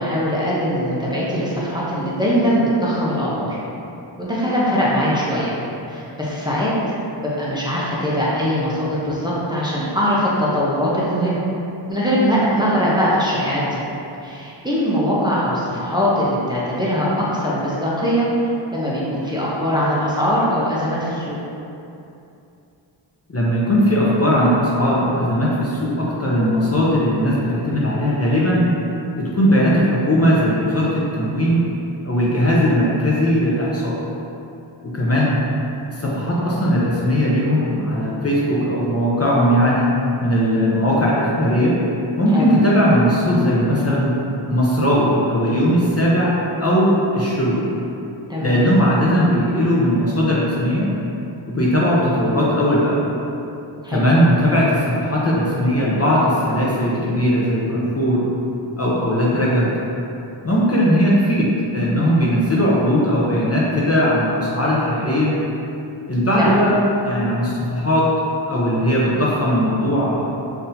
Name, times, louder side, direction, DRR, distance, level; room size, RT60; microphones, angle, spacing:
voice 1, 0.0-3.6 4.2-5.6 5.9-6.7 7.2-11.4 11.9-13.8 14.2-18.3 18.7-21.4 35.1-35.3 42.3-42.5 48.3-48.6 53.8-54.1 66.4-66.6, equal, 10° right, -8 dB, 0.6 m, -21 dB
voice 2, 23.3-28.7 29.2-31.6 32.0-34.0 34.8-35.4 36.0-39.9 40.2-41.7 42.2-44.2 44.5-47.6 48.4-50.9 51.5-53.0 53.9-58.2 58.8-59.7 60.4-65.3 66.1-68.1 68.5-70.2, equal, 35° left, -6 dB, 0.6 m, -18 dB
3.9 x 2.7 x 2.6 m, 2.8 s
wide cardioid pair, 65°, 46 cm